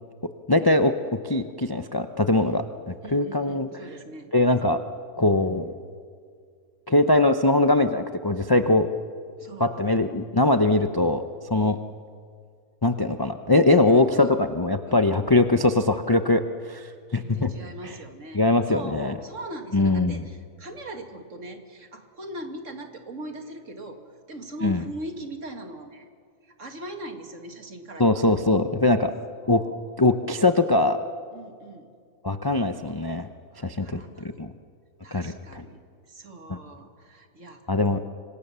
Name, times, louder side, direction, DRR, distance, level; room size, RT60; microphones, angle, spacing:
voice 1, 0.5-3.7 4.3-4.8 5.2-5.7 6.9-8.9 9.6-11.2 11.5-11.8 12.8-16.4 16.7-17.5 18.3-19.1 19.7-20.2 24.6-24.8 28.0-29.1 29.5-29.6 30.0-31.0 32.2-33.3 33.6-34.0 34.4-34.5 35.1-35.6 36.5-36.6 37.7-38.0, left 2 dB, 25° left, 8 dB, 0.5 m, -21 dB
voice 2, 3.0-4.3 9.4-9.9 11.6-11.8 13.7-14.4 14.9-15.1 17.2-24.0 24.3-26.1 26.4-28.3 29.4-29.7 31.3-31.9 33.5-34.4 35.0-35.8 36.1-38.0, right 1 dB, 55° right, 5 dB, 2.3 m, -40 dB
25.5 x 24.5 x 6.9 m, 2.1 s
omnidirectional pair, 1.6 m